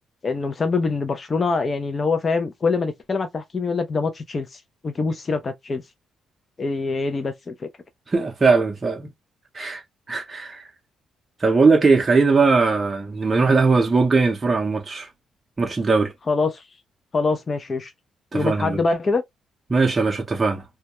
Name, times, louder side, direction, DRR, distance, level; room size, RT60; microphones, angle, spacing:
voice 1, 0.2-5.8 6.6-7.7 16.3-16.7 17.1-17.9 18.3-19.2, left 4 dB, 35° left, 0.4 m, -24 dB
voice 2, 8.1-9.1 9.5-10.7 11.4-15.1 15.6-16.1 18.3-18.8 19.7-20.6, right 4 dB, 30° right, 0.6 m, -20 dB
2.2 x 2.1 x 2.8 m
cardioid pair, 90°, 0 cm